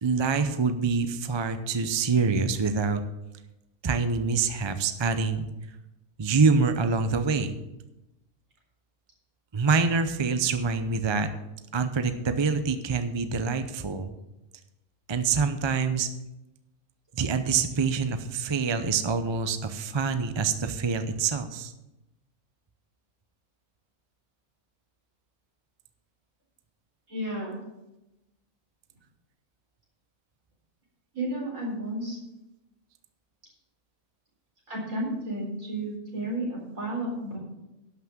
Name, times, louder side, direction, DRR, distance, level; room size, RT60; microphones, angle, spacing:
voice 1, 0.0-3.0 3.8-5.5 6.2-7.6 9.5-11.3 11.7-14.1 15.1-16.1 17.1-21.7, right 5 dB, 35° right, 9 dB, 0.4 m, -26 dB
voice 2, 27.1-27.6 31.1-32.2 34.7-37.4, right 1 dB, 55° right, -3 dB, 4.7 m, -32 dB
11.5 x 6.0 x 7.3 m, 0.96 s
omnidirectional pair, 1.6 m